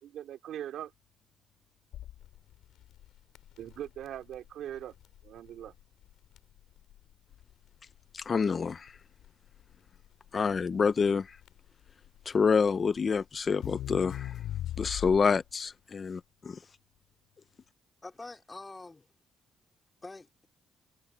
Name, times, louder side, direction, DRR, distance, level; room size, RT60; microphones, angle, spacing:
voice 1, 0.0-0.9 3.6-4.9 5.2-5.7, right 11 dB, 75° right, 3.3 m, -41 dB
Crackle, 1.9-15.5, left 12 dB, 85° left, 3.9 m, -42 dB
voice 2, 8.1-8.9 10.3-11.4 12.3-14.4 14.8-16.6, left 5 dB, 40° left, 0.6 m, -27 dB
voice 3, 18.0-19.1 20.0-20.5, left 3 dB, 20° left, 2.7 m, -45 dB
cardioid pair, 90°, 0 cm